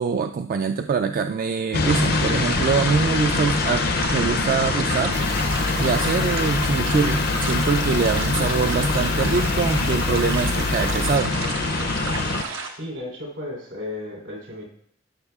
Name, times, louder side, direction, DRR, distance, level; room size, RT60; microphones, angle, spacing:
voice 1, 0.0-3.8 4.1-5.1 5.8-11.3, right 5 dB, 45° right, 7 dB, 0.3 m, -24 dB
sound 1, 1.7-12.4, left 4 dB, 50° left, 0.5 m, -24 dB
sound 2, 1.8-12.7, right 4 dB, 90° right, 1.2 m, -32 dB
sound 3, 5.1-11.2, left 2 dB, 90° left, 1.0 m, -29 dB
voice 2, 12.7-14.6, left 1 dB, 75° right, -1 dB, 3.5 m, -34 dB
14.5 x 6.5 x 2.3 m, 0.65 s
head